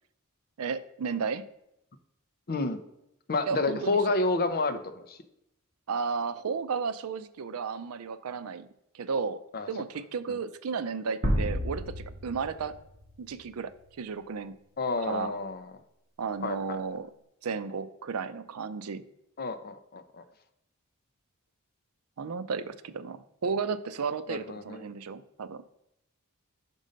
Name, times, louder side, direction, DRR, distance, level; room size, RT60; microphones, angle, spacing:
voice 1, 0.6-1.5 3.5-4.0 5.9-8.7 8.9-9.4 9.7-12.7 13.2-13.7 14.0-14.6 15.0-15.3 16.2-17.1 17.4-19.0 22.2-25.6, right 5 dB, 85° right, 13 dB, 0.5 m, -33 dB
voice 2, 2.5-2.8 3.3-4.8 5.1-5.2 9.5-9.7 14.8-15.6 16.4-16.6 19.4-20.2 24.3-24.8, left 3 dB, 45° left, 9 dB, 0.6 m, -29 dB
sound 1, 11.2-13.7, equal, 45° right, 1.3 m, -31 dB
5.4 x 5.3 x 5.0 m, 0.81 s
head